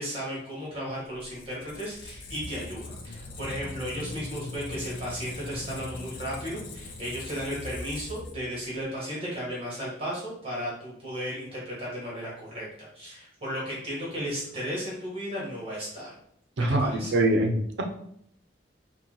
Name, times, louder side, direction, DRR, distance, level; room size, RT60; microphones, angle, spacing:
voice 1, 0.0-16.1 16.6-17.1, equal, 30° right, -6 dB, 1.6 m, -35 dB
Squeak, 1.2-8.8, left 2 dB, 90° left, 0.6 m, -40 dB
voice 2, 16.6-18.0, right 1 dB, 75° right, 3 dB, 0.6 m, -24 dB
4.2 x 2.3 x 3.8 m, 0.69 s
head